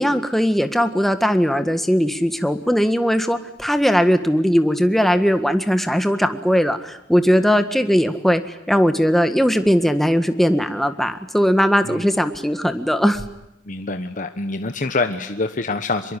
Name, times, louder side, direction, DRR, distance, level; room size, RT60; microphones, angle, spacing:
voice 1, 0.0-13.2, equal, ahead, 8 dB, 1.7 m, -19 dB
voice 2, 13.6-16.2, left 3 dB, 45° left, 7 dB, 1.3 m, -25 dB
25.5 x 22.5 x 10.0 m, 0.83 s
head